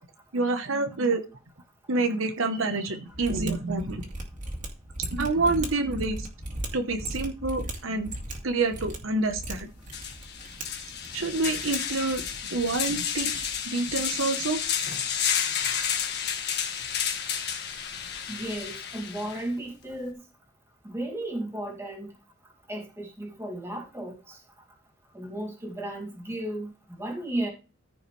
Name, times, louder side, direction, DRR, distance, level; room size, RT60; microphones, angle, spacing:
voice 1, 0.3-1.2 1.9-4.0 5.0-6.3 6.7-8.1 8.4-9.7 11.1-14.6, right 3 dB, 80° right, 1.0 m, -28 dB
Mechanisms, 3.1-13.6, right 1 dB, 40° right, 2.4 m, -38 dB
sound 1, 9.4-9.5 9.9-19.4, left 8 dB, 55° left, 1.5 m, -31 dB
voice 2, 18.3-20.2 20.8-22.1 22.7-24.4 25.1-27.5, right 1 dB, 15° right, 2.3 m, -34 dB
14.5 x 5.6 x 3.2 m
head